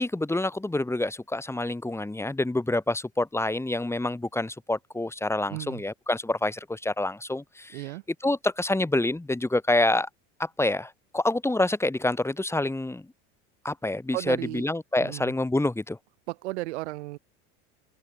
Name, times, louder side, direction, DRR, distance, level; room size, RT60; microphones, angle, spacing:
voice 1, 0.0-7.8 8.2-10.1 10.4-13.1 13.6-16.0, left 2 dB, 10° left, 7.9 m, -27 dB
voice 2, 5.5-5.8 7.7-8.0 14.1-14.7 15.0-15.3 16.3-17.2, right 20 dB, 85° right, 5.5 m, -34 dB
open air
supercardioid pair, 115°, 33 cm